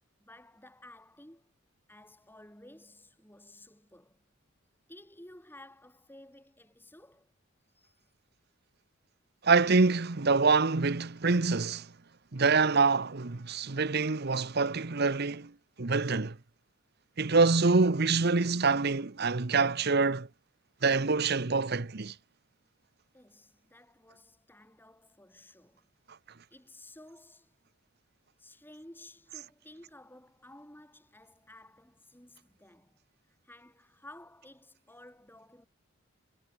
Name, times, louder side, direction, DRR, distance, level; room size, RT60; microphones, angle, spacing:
voice 1, 0.2-1.5 1.9-4.2 4.9-7.3 7.7-8.0 23.1-25.9 26.5-27.6 28.4-33.0 33.2-35.7, left 1 dB, 10° left, 6.3 m, -54 dB
voice 2, 9.4-11.9 12.3-15.5 15.8-16.3 17.2-20.3 20.8-22.1, right 4 dB, 50° right, 1.0 m, -25 dB
head